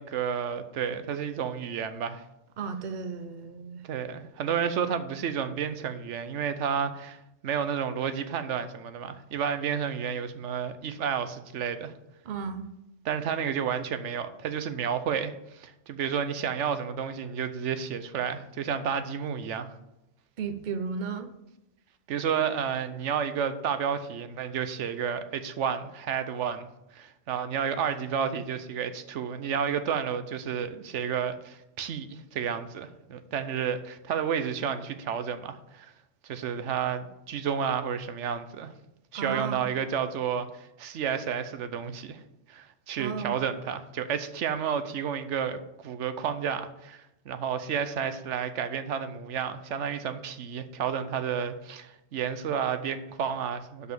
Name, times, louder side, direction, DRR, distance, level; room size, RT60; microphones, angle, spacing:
voice 1, 0.0-2.2 3.8-11.9 13.1-19.7 22.1-26.7 26.9-35.9 36.2-38.7 39.1-42.2 42.5-53.9, right 7 dB, 75° right, 10 dB, 1.0 m, -31 dB
voice 2, 2.6-3.8 12.2-12.7 20.4-21.3 39.1-39.7 43.0-43.4, right 5 dB, 45° right, 9 dB, 0.8 m, -34 dB
6.2 x 5.5 x 6.8 m, 0.87 s
omnidirectional pair, 1.3 m